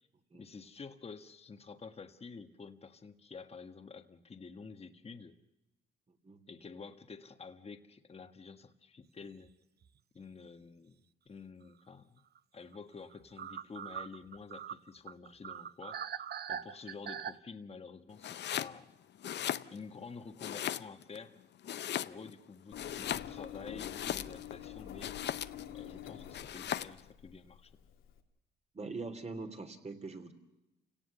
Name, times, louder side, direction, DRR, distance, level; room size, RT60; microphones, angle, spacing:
voice 1, 0.3-5.4 6.5-9.5 10.1-12.2 12.5-16.2 16.5-18.9 19.7-21.4 22.0-25.2 25.7-27.7, left 5 dB, 30° left, 6 dB, 1.5 m, -49 dB
sound 1, 9.2-9.5 9.8-9.9 12.3-12.4 12.7-12.8 13.1-17.3, right 8 dB, 55° right, 0.9 m, -42 dB
Domestic sounds home sounds, 18.2-18.8 19.1-20.0 20.4-21.2 21.6-22.4 22.7-24.5 25.0-25.7 26.3-27.0, left 10 dB, 60° left, 0.8 m, -38 dB
Engine, 22.7-28.2, left 11 dB, 85° left, 2.4 m, -47 dB
voice 2, 28.7-30.3, right 3 dB, 35° right, 7 dB, 3.2 m, -42 dB
29.0 x 18.0 x 6.8 m, 0.96 s
cardioid pair, 90°, 20 cm